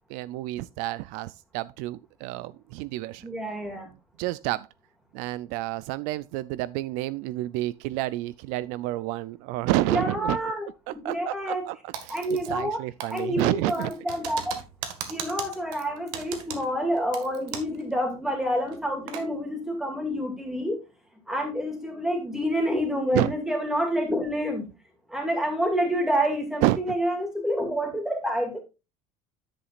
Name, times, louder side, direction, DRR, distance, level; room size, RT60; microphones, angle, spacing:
voice 1, 0.1-3.3 4.2-4.7 5.1-10.4 10.9-13.9 23.1-23.3 26.6-27.0, right 17 dB, 65° right, 0.4 m, -29 dB
voice 2, 3.2-3.9 9.7-10.7 11.1-11.6 12.1-12.8 13.1-14.6 15.1-20.8 21.3-24.7 25.1-28.6, equal, 5° right, 2.2 m, -28 dB
Typing, 11.9-12.7 13.0-17.8 18.1-18.2 18.7-19.3, right 9 dB, 85° right, 1.7 m, -38 dB
10.0 x 8.0 x 2.4 m
cardioid pair, 175°, 13 cm